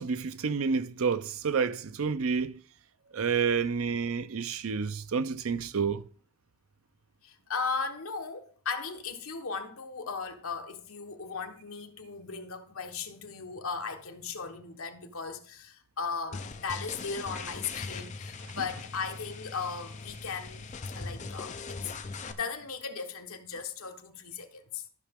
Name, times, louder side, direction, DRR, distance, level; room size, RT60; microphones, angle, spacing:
voice 1, 0.0-2.6 3.1-6.0, right 5 dB, 70° right, 0.6 m, -29 dB
voice 2, 7.2-21.9 22.3-24.8, left 5 dB, 75° left, 1.2 m, -37 dB
sound 1, 16.3-22.3, left 4 dB, 35° left, 0.6 m, -40 dB
13.0 x 5.8 x 3.6 m
head